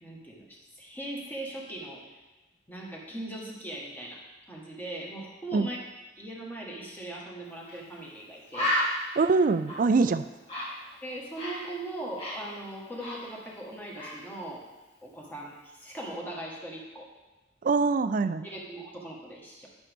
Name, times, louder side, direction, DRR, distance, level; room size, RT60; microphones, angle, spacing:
voice 1, 0.0-2.0 2.7-5.8 6.2-8.8 11.0-14.6 15.0-17.1 18.4-19.7, right 1 dB, 10° left, -3 dB, 1.5 m, -40 dB
Bird, 7.7-7.8 8.1-8.2 8.5-11.7 12.0-13.7 13.9-14.2, equal, 35° left, 1.8 m, -33 dB
voice 2, 9.2-10.2 17.6-18.5, right 4 dB, 45° right, 13 dB, 0.3 m, -23 dB
11.0 x 6.1 x 3.5 m, 1.1 s
head